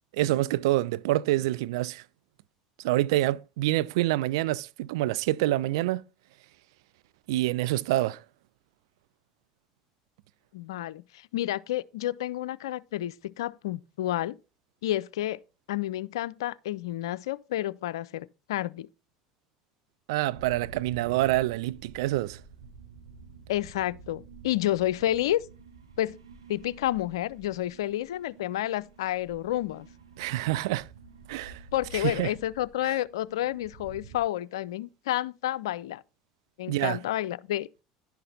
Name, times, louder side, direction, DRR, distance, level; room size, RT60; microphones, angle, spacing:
voice 1, 0.1-2.0 2.8-6.0 7.3-8.2 20.1-22.4 30.2-30.9 31.3-31.6 31.9-32.3 32.8-32.9 36.7-37.0, right 16 dB, 70° right, 0.3 m, -27 dB
voice 2, 10.5-14.4 14.8-15.4 15.7-18.9 23.5-25.5 26.0-26.2 26.5-29.9 31.7-36.0 36.6-37.7, left 13 dB, 75° left, 0.4 m, -30 dB
sound 1, 20.3-34.2, right 5 dB, 90° right, 0.9 m, -49 dB
11.0 x 5.8 x 3.9 m
hypercardioid pair, 75°, 3 cm